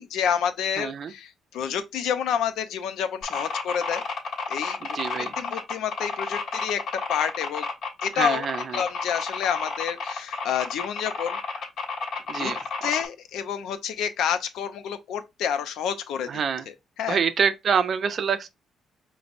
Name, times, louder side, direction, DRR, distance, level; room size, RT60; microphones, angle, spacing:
voice 1, 0.0-4.0 4.5-7.7 8.0-11.4 12.3-12.5 12.8-16.3 17.0-17.2, left 8 dB, 85° left, 0.5 m, -29 dB
voice 2, 0.8-1.1 4.8-5.3 8.1-8.8 12.3-12.9 16.3-16.7 17.1-18.5, right 6 dB, 55° right, 0.5 m, -26 dB
sound 1, 3.2-13.1, left 4 dB, 70° left, 1.4 m, -31 dB
5.2 x 2.0 x 2.5 m
cardioid pair, 90°, 0 cm